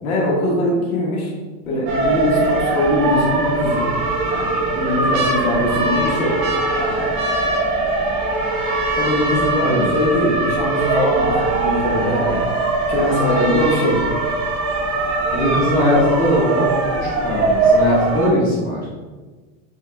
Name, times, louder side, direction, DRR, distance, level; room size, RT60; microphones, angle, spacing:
voice 1, 0.0-1.3 1.7-3.9 4.3-6.4 6.8-7.0 9.0-12.4 12.9-14.0, left 1 dB, 70° left, -3 dB, 1.3 m, -21 dB
sound 1, 1.7-2.1 2.6-2.7 3.6-4.1 4.6-12.6 13.3-13.4 13.5-14.0 14.5-14.6, right 1 dB, 75° right, 0.9 m, -27 dB
sound 2, 1.9-18.3, right 3 dB, 25° right, 0.8 m, -21 dB
voice 2, 15.3-18.8, left 1 dB, 10° left, -9 dB, 0.8 m, -19 dB
5.6 x 2.9 x 2.3 m, 1.3 s
supercardioid pair, 180°, 44 cm